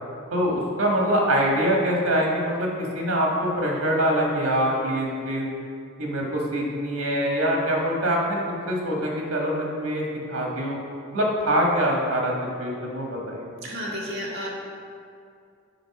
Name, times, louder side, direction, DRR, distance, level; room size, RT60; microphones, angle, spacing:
voice 1, 0.3-5.5 6.0-8.4 8.7-10.8 11.1-12.3 12.6-13.5, equal, 80° right, -1 dB, 1.6 m, -24 dB
voice 2, 13.6-14.5, equal, 55° right, -4 dB, 1.7 m, -31 dB
7.8 x 4.4 x 5.9 m, 2.4 s
head